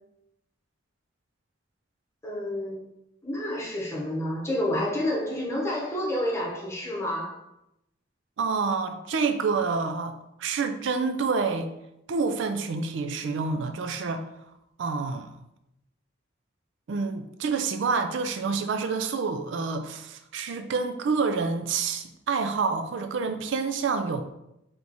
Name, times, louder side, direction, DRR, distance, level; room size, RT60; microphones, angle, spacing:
voice 1, 2.2-2.9 3.2-7.4, left 1 dB, 15° left, -4 dB, 0.9 m, -29 dB
voice 2, 8.4-11.7 12.1-14.3 14.8-15.3 16.9-24.2, right 4 dB, 70° right, 8 dB, 0.4 m, -28 dB
3.5 x 3.0 x 3.9 m, 0.84 s
head